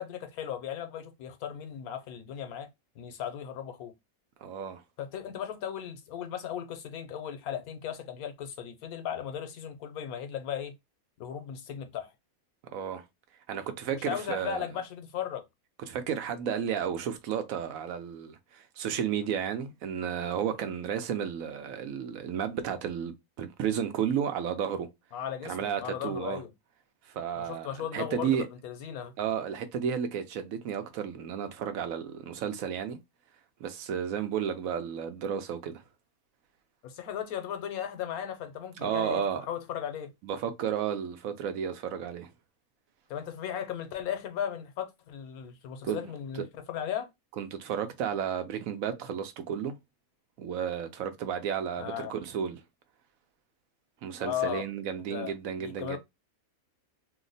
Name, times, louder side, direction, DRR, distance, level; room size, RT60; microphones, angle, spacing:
voice 1, 0.0-2.7 3.0-3.9 5.0-10.7 11.2-12.1 13.9-15.4 25.1-26.5 27.4-29.1 36.8-40.1 43.1-47.1 51.8-52.2 54.2-54.7 55.1-56.0, left 9 dB, 90° left, 1.2 m, -36 dB
voice 2, 4.4-4.8 12.7-13.0 13.5-14.7 15.8-24.9 25.4-26.4 27.1-28.5 29.2-33.0 33.6-35.8 38.8-39.5 40.2-42.3 45.8-46.0 47.4-49.8 50.4-52.6 54.0-56.0, right 8 dB, 75° right, 1.0 m, -32 dB
2.8 x 2.1 x 3.8 m
omnidirectional pair, 1.5 m